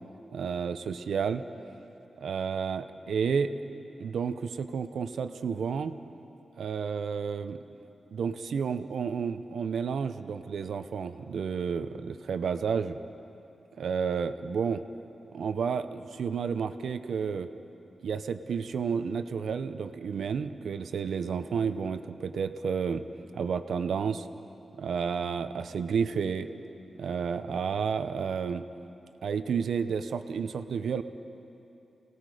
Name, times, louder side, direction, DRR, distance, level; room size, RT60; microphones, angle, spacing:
voice 1, 0.3-1.4 2.2-3.5 4.0-6.0 6.6-7.6 8.1-13.0 13.8-14.8 15.3-17.5 18.0-23.0 23.3-24.3 24.8-26.5 27.0-28.6 29.2-31.0, right 6 dB, 85° right, 10 dB, 0.7 m, -31 dB
29.0 x 18.5 x 5.0 m, 2.9 s
wide cardioid pair, 150°, 0 cm